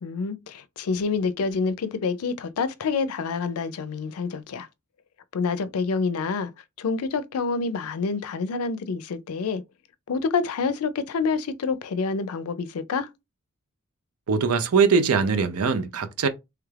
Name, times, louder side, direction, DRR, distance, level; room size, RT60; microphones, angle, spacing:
voice 1, 0.0-4.7 5.3-6.5 6.8-9.6 10.1-13.1, left 4 dB, 80° left, 0.4 m, -27 dB
voice 2, 14.3-16.3, right 5 dB, 90° right, 0.6 m, -21 dB
3.2 x 2.4 x 3.2 m
head